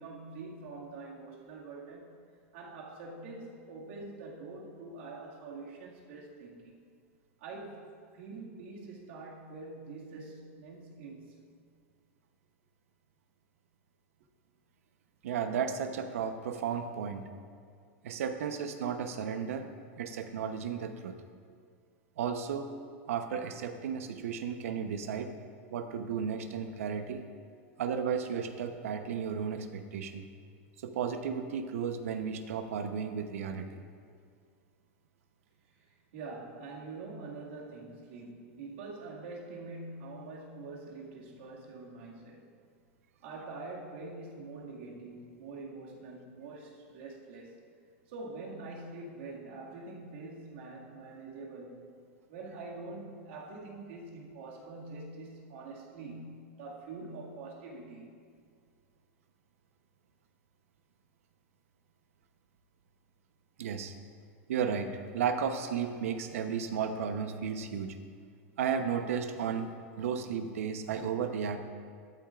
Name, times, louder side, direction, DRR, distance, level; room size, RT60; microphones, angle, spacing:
voice 1, 0.0-2.2 2.5-6.9 7.4-7.9 8.1-11.4 36.1-42.5 43.2-47.6 48.1-51.9 52.3-58.2, right 3 dB, 55° right, -3 dB, 2.0 m, -45 dB
voice 2, 15.2-17.2 18.0-19.7 20.0-21.2 22.2-22.7 23.1-25.3 25.7-27.2 27.8-30.3 30.8-33.8 63.6-63.9 64.5-68.0 68.6-71.6, right 7 dB, 85° right, 8 dB, 0.8 m, -34 dB
13.0 x 12.0 x 2.5 m, 2.1 s
supercardioid pair, 180°, 7 cm